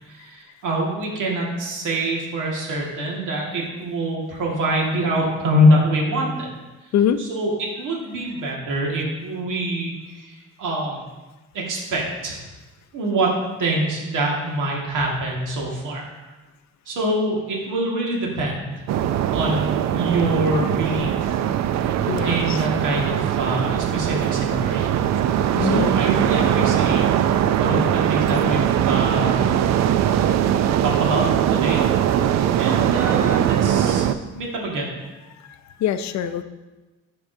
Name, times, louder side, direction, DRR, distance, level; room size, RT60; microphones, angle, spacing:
voice 1, 0.0-6.5 7.2-11.0 11.5-12.4 12.9-13.3 13.6-16.3 16.9-18.9 19.3-21.4 22.2-25.0 25.6-29.5 30.8-31.8 32.6-34.1 34.3-34.9, right 1 dB, 85° right, -2 dB, 1.9 m, -25 dB
sound 1, 18.9-34.1, right 10 dB, 65° right, 0.4 m, -21 dB
voice 2, 22.1-22.6 25.5-25.9 35.8-36.4, left 9 dB, 65° left, 11 dB, 0.5 m, -23 dB
10.5 x 4.7 x 2.7 m, 1.1 s
cardioid pair, 90°, 30 cm